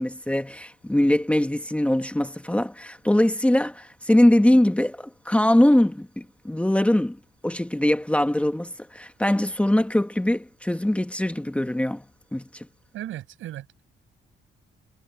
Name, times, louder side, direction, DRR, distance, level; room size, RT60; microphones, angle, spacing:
voice 1, 0.0-7.2 7.4-12.0 12.3-12.7, left 1 dB, 5° left, 1.6 m, -22 dB
voice 2, 12.9-13.8, right 13 dB, 85° right, 6.8 m, -36 dB
cardioid pair, 90°, 20 cm